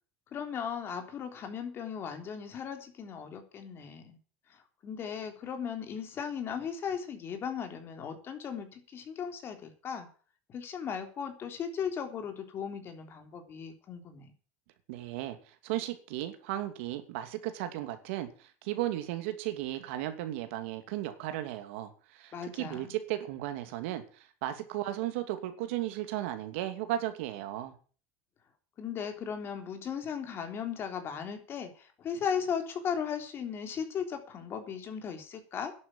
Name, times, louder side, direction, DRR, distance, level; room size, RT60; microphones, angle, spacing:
voice 1, 0.3-4.2 4.5-10.1 10.5-14.3 22.3-22.9 28.8-35.7, left 7 dB, 35° left, 6 dB, 3.5 m, -37 dB
voice 2, 14.9-27.7, right 14 dB, 80° right, 8 dB, 2.6 m, -35 dB
11.0 x 8.8 x 9.0 m, 0.40 s
supercardioid pair, 135°, 7 cm